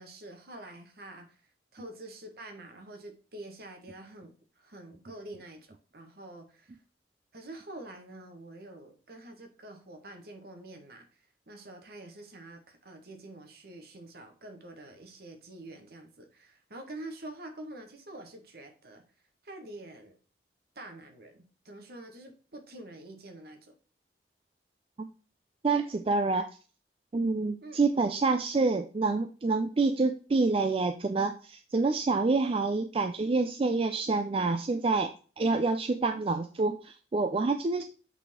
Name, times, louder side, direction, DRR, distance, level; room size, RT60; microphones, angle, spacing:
voice 1, 0.0-1.4 1.7-6.8 7.3-19.0 19.4-20.2 20.7-23.7 27.6-27.8, right 1 dB, 60° right, 5 dB, 1.4 m, -47 dB
voice 2, 25.6-26.5 27.1-37.8, right 3 dB, 30° right, 7 dB, 0.4 m, -27 dB
8.1 x 4.1 x 3.6 m, 0.37 s
head